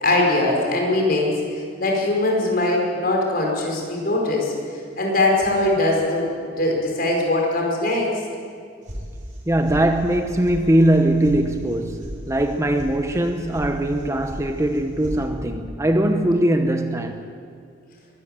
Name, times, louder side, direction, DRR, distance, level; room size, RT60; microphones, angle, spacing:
voice 1, 0.0-8.1, left 2 dB, 50° left, 5.2 m, -21 dB
sound 1, 8.9-9.4 9.7-10.2 10.4-10.6 10.9-11.4 11.6-12.1 12.4-12.9 13.2-13.7 13.9-14.4 14.7-15.2, equal, 45° right, 5.1 m, -34 dB
voice 2, 9.5-17.2, right 1 dB, 15° right, 1.0 m, -21 dB
23.0 x 13.0 x 9.1 m
head